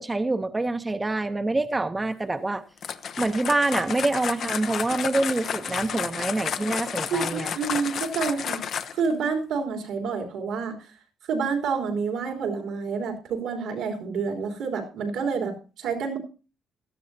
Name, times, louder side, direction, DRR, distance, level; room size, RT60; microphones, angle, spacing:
voice 1, 0.0-2.6 3.2-7.5, right 2 dB, 20° right, 0.8 m, -26 dB
sound 1, 2.8-9.1, left 8 dB, 65° left, 0.8 m, -31 dB
voice 2, 7.1-8.6 8.9-10.8 11.3-16.2, right 5 dB, 85° right, 3.4 m, -28 dB
16.5 x 12.5 x 2.8 m
cardioid pair, 90°, 0 cm